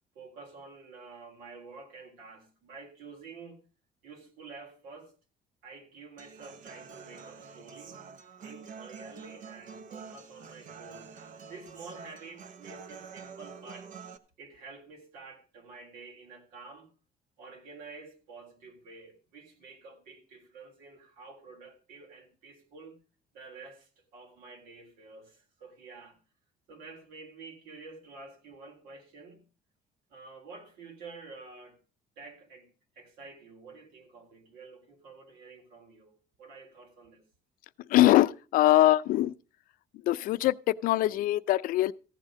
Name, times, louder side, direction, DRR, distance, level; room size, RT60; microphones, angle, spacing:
voice 1, 0.1-3.6 4.0-5.1 5.6-8.1 8.4-11.2 11.5-13.9 14.4-16.9 17.4-23.0 23.3-26.2 26.7-29.4 30.1-31.8 32.2-32.7 32.9-37.3, right 4 dB, 85° right, 3.8 m, -49 dB
Human voice / Acoustic guitar, 6.2-14.2, right 6 dB, 60° right, 1.1 m, -47 dB
voice 2, 37.9-39.3 40.1-41.9, left 15 dB, 65° left, 0.5 m, -23 dB
15.0 x 8.2 x 5.1 m
cardioid pair, 155°, 15 cm